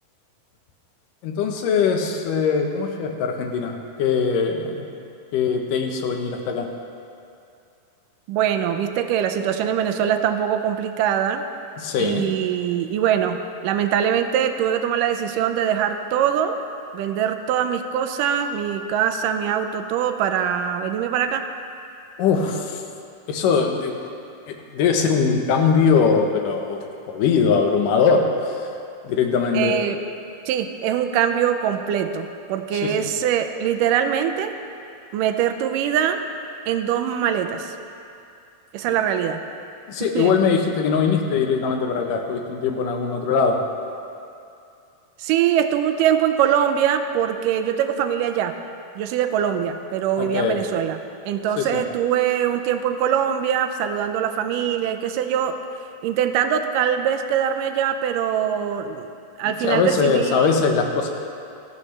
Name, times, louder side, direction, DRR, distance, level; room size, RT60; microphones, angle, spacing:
voice 1, 1.2-4.8 5.3-6.7 11.8-12.2 22.2-22.8 23.3-23.9 24.5-28.7 29.0-29.7 32.8-32.9 39.9-43.6 50.2-50.6 51.6-51.8 59.4-61.1, left 5 dB, 80° left, 3 dB, 2.6 m, -21 dB
voice 2, 8.3-11.4 12.0-16.6 16.9-21.5 29.5-30.0 30.5-34.6 35.1-36.2 36.7-37.7 38.7-39.4 40.0-40.4 45.2-48.5 49.0-51.0 51.3-55.6 56.0-59.1 59.4-60.5, right 9 dB, 85° right, 7 dB, 2.2 m, -23 dB
17.5 x 14.0 x 3.3 m, 2.6 s
omnidirectional pair, 3.8 m